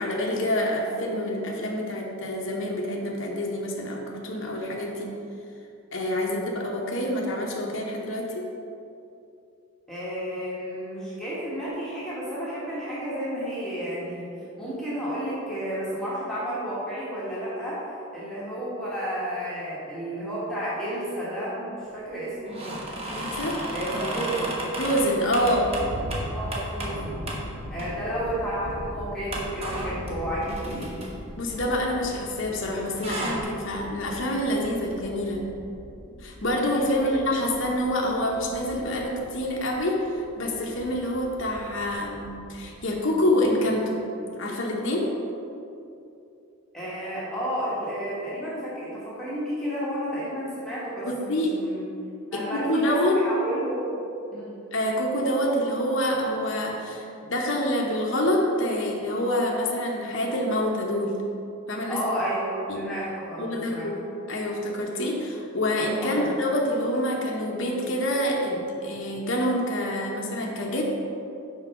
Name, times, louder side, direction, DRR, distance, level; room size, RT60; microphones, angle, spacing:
voice 1, 0.0-5.1 5.9-8.5 23.1-23.6 24.8-25.8 31.4-35.4 36.2-44.0 44.4-45.1 51.0-51.5 52.3-53.2 54.7-61.2 61.7-62.0 62.7-62.8 63.4-63.9 64.3-70.8, left 1 dB, 60° left, -1 dB, 0.9 m, -27 dB
voice 2, 6.2-6.5 9.9-14.3 14.6-17.9 18.1-22.9 23.7-24.7 26.3-27.2 27.7-31.0 36.9-37.1 46.7-51.8 52.3-54.0 54.3-54.5 61.9-63.9 66.0-66.2, equal, 5° left, -10 dB, 1.5 m, -32 dB
sound 1, 22.5-27.0 27.3-27.4 27.8-28.3 28.6-28.7 29.3-32.4 32.7-33.4, right 1 dB, 25° right, 1.0 m, -34 dB
sound 2, 24.9-42.9, equal, 85° right, 1.1 m, -40 dB
6.0 x 4.6 x 5.8 m, 2.7 s
head